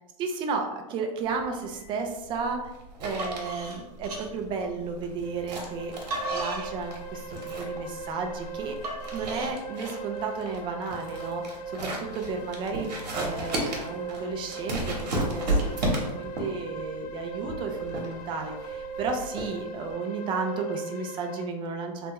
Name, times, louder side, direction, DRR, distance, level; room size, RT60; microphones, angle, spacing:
voice 1, 0.2-2.7 3.0-6.0 6.3-22.1, right 4 dB, 25° right, 4 dB, 0.4 m, -33 dB
sound 1, 1.3-19.9, right 1 dB, 90° right, 1.0 m, -34 dB
sound 2, 2.4-2.6 3.0-5.1 5.7-9.5, right 1 dB, 65° right, 1.0 m, -36 dB
sound 3, 5.1-21.4, right 3 dB, 65° left, 0.5 m, -39 dB
3.3 x 2.1 x 2.9 m, 1.0 s
hypercardioid pair, 135°, 21 cm